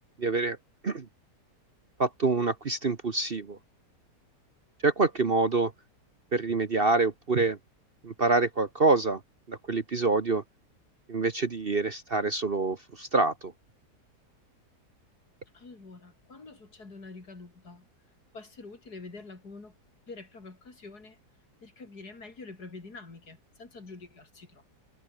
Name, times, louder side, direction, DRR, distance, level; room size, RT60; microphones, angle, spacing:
voice 1, 0.2-0.6 0.8-1.1 2.0-3.6 4.8-5.7 6.3-7.6 8.0-9.2 9.5-10.4 11.1-13.5, right 3 dB, 35° right, 1.3 m, -26 dB
voice 2, 15.5-17.9 18.3-19.8 20.1-21.2 21.6-24.8, left 3 dB, 65° left, 4.3 m, -46 dB
omnidirectional pair, 1.8 m